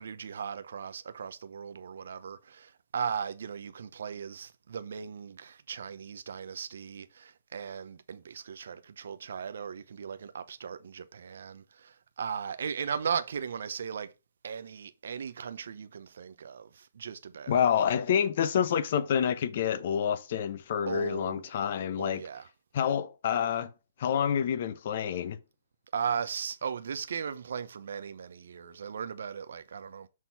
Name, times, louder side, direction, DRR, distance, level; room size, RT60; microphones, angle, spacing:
voice 1, 0.0-14.1 14.4-17.6 20.9-21.5 22.0-22.5 25.9-30.1, right 7 dB, 70° right, 0.7 m, -37 dB
voice 2, 17.5-22.2 22.7-23.7 24.0-25.4, left 8 dB, 50° left, 0.9 m, -28 dB
6.4 x 3.7 x 6.0 m
hypercardioid pair, 150°, 0 cm